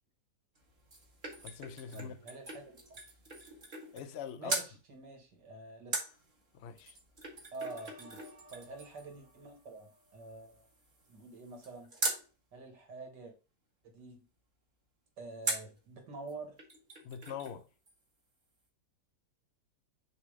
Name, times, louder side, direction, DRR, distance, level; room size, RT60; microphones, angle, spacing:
sound 1, 0.6-4.2 4.5-4.7 5.9-12.3 15.4-15.8 16.3-16.4 16.6-17.6 17.9-18.0, right 2 dB, 30° right, 1.3 m, -41 dB
voice 1, 1.4-2.2 3.9-4.6 6.5-7.0 17.0-17.7, left 8 dB, 65° left, 0.6 m, -43 dB
voice 2, 1.9-2.8 4.4-6.1 7.5-8.2 8.5-10.7 11.1-11.9 12.5-13.3 13.8-14.2 15.2-16.6, right 3 dB, 90° right, 2.3 m, -47 dB
sound 2, 7.6-10.7, left 1 dB, 50° right, 1.9 m, -60 dB
6.6 x 2.9 x 5.0 m
omnidirectional pair, 1.8 m